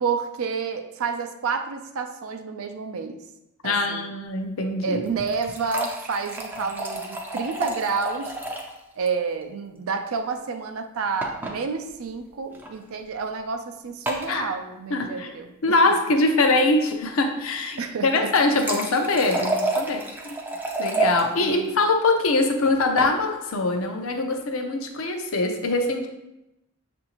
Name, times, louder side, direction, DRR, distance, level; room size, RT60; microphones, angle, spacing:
voice 1, 0.0-3.2 3.6-4.1 4.8-8.4 8.9-15.8 17.8-18.3 21.4-21.8, right 5 dB, 70° right, 6 dB, 0.4 m, -29 dB
voice 2, 3.6-5.0 14.3-14.5 14.9-15.3 15.6-20.4 20.8-26.1, left 2 dB, 65° left, 4 dB, 0.6 m, -23 dB
sound 1, 5.0-8.8 9.1-9.2 9.4-9.5 11.2-11.6 12.5-12.7 14.1-14.3 18.1-21.2 22.7-23.1, right 2 dB, 10° right, 0.4 m, -29 dB
6.3 x 2.6 x 2.9 m, 0.91 s
head